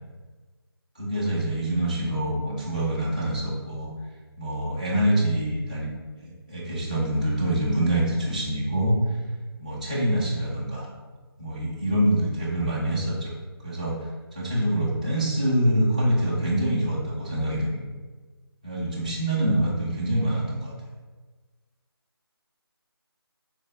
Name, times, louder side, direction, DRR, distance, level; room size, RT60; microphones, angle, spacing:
voice 1, 0.9-3.9 4.4-5.9 6.2-9.0 9.6-10.9 11.4-13.3 13.6-17.8 18.6-20.7, right 1 dB, 20° right, -8 dB, 0.3 m, -25 dB
3.7 x 2.1 x 2.7 m, 1.3 s
figure-of-eight pair, 175°, 13 cm